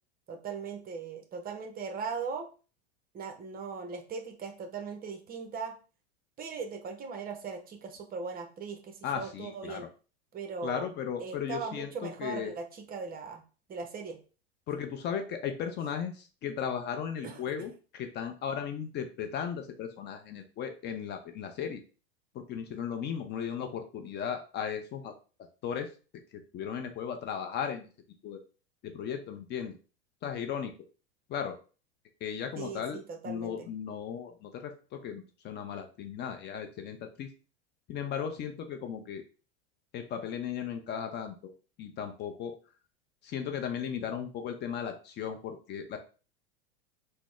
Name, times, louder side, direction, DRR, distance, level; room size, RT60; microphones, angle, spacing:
voice 1, 0.3-2.5 3.1-5.7 6.4-9.9 10.3-10.9 11.2-13.4 13.7-14.2 17.2-17.5 32.6-33.7, right 5 dB, 30° right, 6 dB, 0.6 m, -39 dB
voice 2, 9.0-9.9 10.6-12.5 14.7-21.8 22.3-25.1 25.6-25.9 26.5-27.9 28.2-28.4 28.8-29.7 30.2-30.7 31.3-31.6 32.2-37.3 37.9-39.2 39.9-41.5 41.8-42.5 43.2-46.0, left 8 dB, 35° left, 5 dB, 0.5 m, -36 dB
4.0 x 2.0 x 3.1 m, 0.37 s
hypercardioid pair, 95°, 32 cm